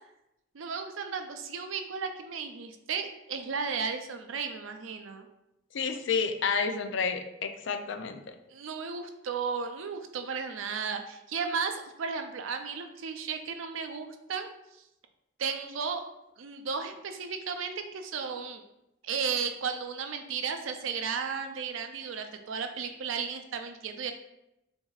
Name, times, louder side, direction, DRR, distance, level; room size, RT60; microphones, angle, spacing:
voice 1, 0.5-5.3 8.5-14.5 15.4-16.0 16.4-18.6 19.0-24.1, right 5 dB, 85° right, 7 dB, 0.5 m, -34 dB
voice 2, 5.7-8.2, left 5 dB, 70° left, 7 dB, 0.4 m, -30 dB
6.9 x 2.7 x 2.4 m, 0.87 s
head